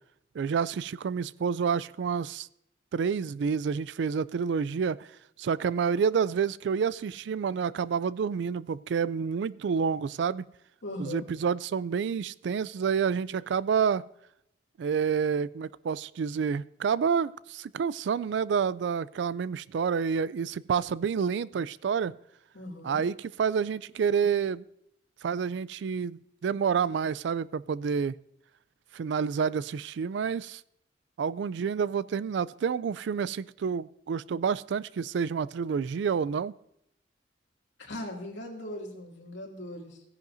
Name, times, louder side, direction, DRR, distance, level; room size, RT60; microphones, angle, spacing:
voice 1, 0.3-2.5 2.9-5.1 5.4-10.5 11.0-14.0 14.8-22.1 22.8-24.6 25.2-28.2 28.9-30.6 31.2-36.5, right 6 dB, 70° right, 19 dB, 0.3 m, -29 dB
voice 2, 10.8-11.2 22.5-23.0 37.8-40.0, left 1 dB, 80° left, 0 dB, 2.4 m, -39 dB
16.5 x 10.5 x 2.6 m, 0.76 s
head